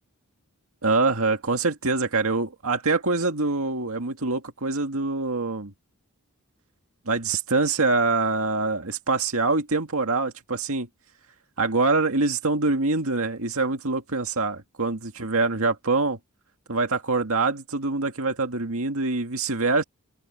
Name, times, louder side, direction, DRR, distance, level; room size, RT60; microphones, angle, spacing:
voice 1, 0.8-5.7 7.1-10.9 11.6-16.2 16.7-19.8, right 3 dB, 65° right, 2.1 m, -24 dB
head